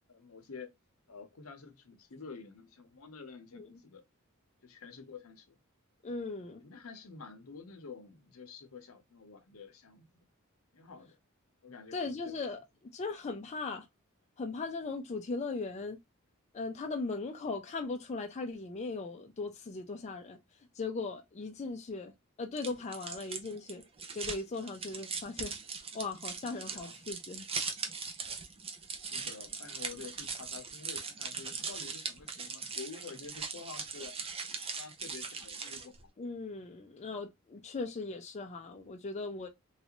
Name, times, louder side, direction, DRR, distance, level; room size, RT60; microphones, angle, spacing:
voice 1, 0.1-0.7 1.1-4.0 4.6-5.6 6.6-10.2 10.7-11.2 11.6-12.4 26.5-27.2 29.1-34.2 34.8-36.1, left 4 dB, 70° left, 0.7 m, -49 dB
voice 2, 6.0-6.6 11.9-12.6 12.9-13.9 14.4-16.0 16.5-20.4 20.8-22.1 22.4-23.8 24.1-25.6 25.9-27.5 36.2-39.5, left 3 dB, 30° left, 0.4 m, -38 dB
sound 1, 22.6-36.0, right 5 dB, 25° right, 0.5 m, -40 dB
3.1 x 2.5 x 2.9 m
head